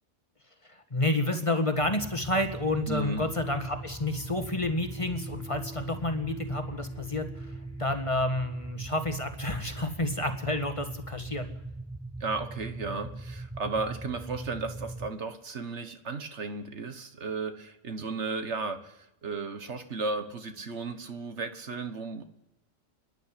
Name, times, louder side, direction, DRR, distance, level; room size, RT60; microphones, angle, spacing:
voice 1, 0.7-7.5 7.8-11.5, left 2 dB, 25° left, 6 dB, 1.8 m, -30 dB
sound 1, 1.8-15.1, right 2 dB, 15° right, 0.7 m, -40 dB
voice 2, 2.9-3.2 12.2-22.2, right 3 dB, 65° right, 8 dB, 1.6 m, -34 dB
sound 2, 3.3-9.0, right 3 dB, 55° left, 2.9 m, -51 dB
29.5 x 10.5 x 10.0 m, 0.88 s
omnidirectional pair, 1.3 m